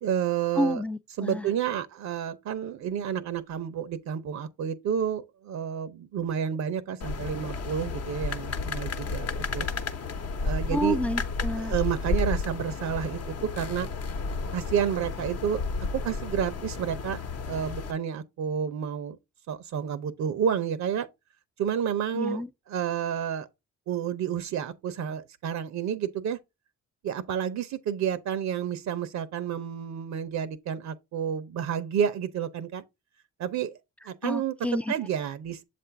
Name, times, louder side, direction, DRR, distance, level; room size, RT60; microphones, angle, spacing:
voice 1, 0.0-0.8 1.2-9.3 9.5-9.7 10.4-11.0 11.6-13.9 14.5-15.6 15.9-17.2 17.5-19.2 19.5-21.1 21.6-23.5 23.9-26.4 27.0-32.8 33.4-33.8 34.1-34.6 34.9-35.6, right 8 dB, 65° right, 0.7 m, -30 dB
voice 2, 0.6-1.5 10.7-11.7 22.1-22.5 34.2-34.9, left 1 dB, 5° left, 0.3 m, -29 dB
sound 1, 7.0-17.9, left 4 dB, 55° left, 0.9 m, -32 dB
7.4 x 2.5 x 5.6 m
cardioid pair, 90°, 30 cm